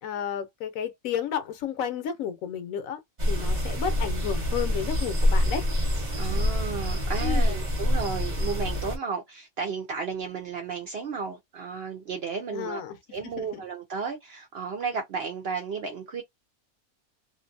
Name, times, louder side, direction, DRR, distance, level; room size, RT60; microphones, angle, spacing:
voice 1, 0.0-3.0 3.3-5.7 7.2-7.6 12.5-13.0 13.2-13.6, left 8 dB, 70° left, 1.0 m, -32 dB
sound 1, 3.2-9.0, equal, 35° right, 1.0 m, -26 dB
voice 2, 6.1-12.8 13.1-16.2, right 5 dB, 60° right, 0.7 m, -33 dB
2.5 x 2.5 x 2.6 m
omnidirectional pair, 1.5 m